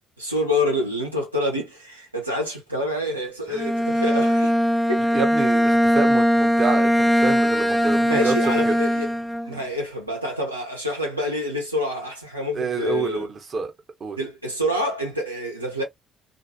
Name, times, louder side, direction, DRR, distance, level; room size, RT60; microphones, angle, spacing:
voice 1, 0.2-4.6 4.9-5.0 7.8-9.1 9.5-13.3 14.2-15.8, left 1 dB, 90° right, 0.8 m, -27 dB
Bowed string instrument, 3.5-9.6, equal, ahead, 0.6 m, -20 dB
voice 2, 5.1-8.3 8.7-8.8 12.5-13.7 14.0-14.2, right 4 dB, 40° right, 1.0 m, -27 dB
2.6 x 2.4 x 2.8 m
figure-of-eight pair, 50°, 0 cm